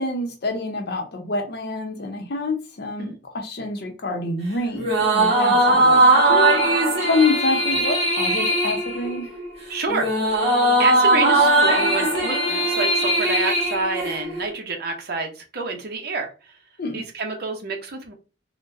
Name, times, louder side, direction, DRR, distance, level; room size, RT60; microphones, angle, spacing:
voice 1, 0.0-6.6 7.0-9.3 16.8-17.0, left 3 dB, 60° left, 0.7 m, -26 dB
sound 1, 4.7-14.5, right 1 dB, 35° right, 1.6 m, -19 dB
voice 2, 9.7-16.6 16.9-18.1, right 3 dB, 55° right, 0.7 m, -28 dB
3.8 x 2.2 x 2.6 m
head